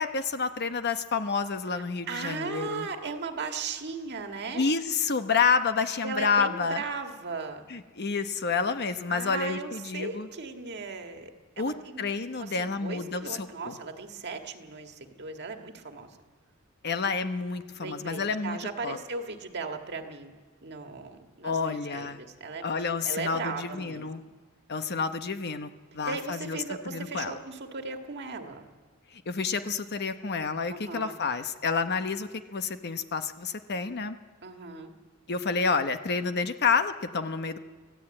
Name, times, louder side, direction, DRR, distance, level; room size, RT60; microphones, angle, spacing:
voice 1, 0.0-2.9 4.5-6.8 7.7-10.3 11.6-13.8 16.8-19.0 21.4-22.2 22.6-24.2 24.7-26.6 26.9-27.4 29.3-34.2 35.3-37.6, left 5 dB, 50° left, 9 dB, 1.0 m, -29 dB
voice 2, 2.1-4.7 6.0-7.7 9.1-12.1 12.4-16.2 17.8-20.3 20.6-24.3 26.0-28.7 30.7-31.2 34.4-34.9, right 4 dB, 55° right, 4 dB, 1.8 m, -37 dB
24.0 x 15.0 x 8.9 m, 1.5 s
head